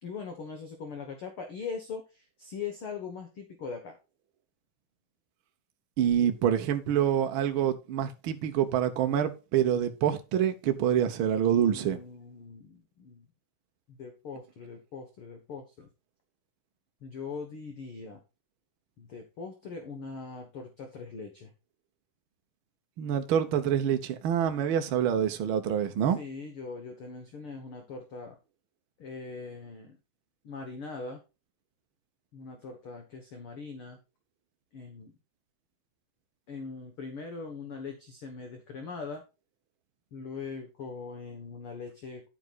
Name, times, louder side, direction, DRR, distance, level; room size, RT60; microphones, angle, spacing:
voice 1, 0.0-4.0 11.6-13.3 13.9-15.9 17.0-18.2 19.0-21.5 26.2-28.4 29.0-30.0 30.4-31.2 32.3-34.0 34.7-35.1 36.5-39.2 40.1-42.3, left 5 dB, 50° left, 1.8 m, -41 dB
voice 2, 6.0-12.0 23.0-26.2, right 9 dB, 75° right, 1.1 m, -26 dB
10.5 x 9.4 x 2.5 m
omnidirectional pair, 3.8 m